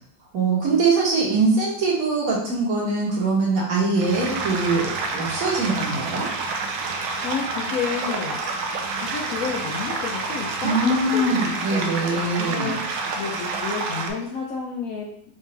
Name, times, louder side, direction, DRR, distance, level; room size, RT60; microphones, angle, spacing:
voice 1, 0.3-6.3 10.6-12.7, right 3 dB, 50° right, -4 dB, 1.5 m, -22 dB
sound 1, 3.9-14.1, right 3 dB, 75° right, 1.3 m, -28 dB
voice 2, 6.9-8.4 9.0-12.8 13.1-15.1, left 6 dB, 75° left, -1 dB, 0.8 m, -31 dB
4.0 x 3.2 x 3.2 m, 0.68 s
omnidirectional pair, 2.0 m